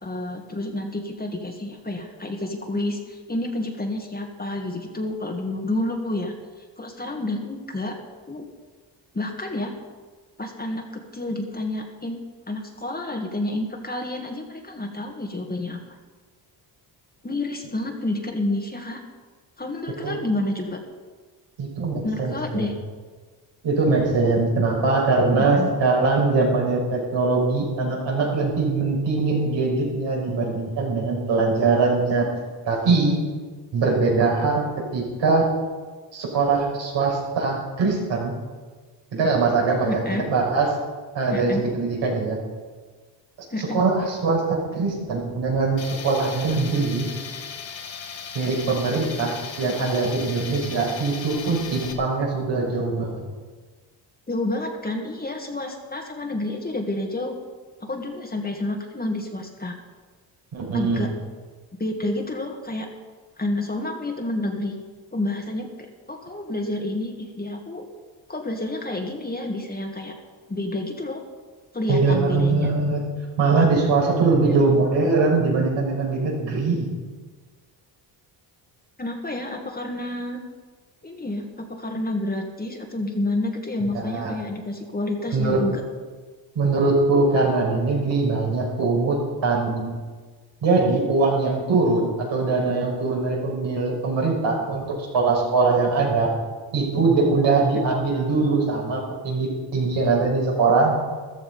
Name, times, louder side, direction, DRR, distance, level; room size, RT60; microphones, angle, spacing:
voice 1, 0.0-6.3 6.8-8.0 8.3-8.5 9.1-9.7 10.4-12.2 12.5-15.8 17.2-19.0 19.6-20.8 22.0-22.7 25.4-25.7 39.9-40.3 41.3-41.6 43.5-43.8 46.5-46.6 54.3-57.4 57.8-59.8 60.7-61.1 61.8-62.9 63.4-64.7 65.1-67.9 68.3-70.2 70.5-71.2 71.7-72.7 74.4-74.8 79.0-80.4 81.0-85.8, left 2 dB, 20° left, 2 dB, 2.1 m, -29 dB
voice 2, 21.6-22.7 23.6-32.3 32.7-33.2 33.7-35.5 36.1-38.3 39.1-40.0 40.3-40.7 41.1-42.4 43.6-47.1 48.3-53.2 60.5-61.0 71.9-73.0 73.4-76.9 83.9-84.3 85.3-85.6 86.5-90.0 90.6-96.3 96.7-101.0, right 3 dB, 70° right, -2 dB, 5.8 m, -22 dB
Tools, 45.8-51.9, left 6 dB, 80° left, 2.0 m, -37 dB
14.5 x 13.0 x 5.5 m, 1.4 s
cardioid pair, 90°, 45 cm